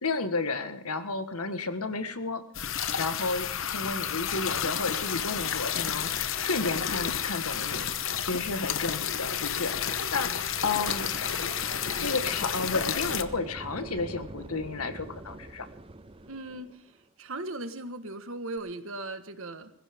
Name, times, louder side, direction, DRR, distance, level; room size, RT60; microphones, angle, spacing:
voice 1, 0.0-7.9 8.2-11.1 11.7-15.7, left 3 dB, 80° left, 10 dB, 1.6 m, -32 dB
sound 1, 2.5-13.2, left 8 dB, 60° left, 1.0 m, -31 dB
sound 2, 10.9-17.0 18.6-18.7, right 2 dB, 25° right, 0.6 m, -44 dB
voice 2, 16.2-19.7, right 2 dB, 65° right, 9 dB, 1.6 m, -38 dB
21.0 x 15.5 x 3.7 m, 0.69 s
head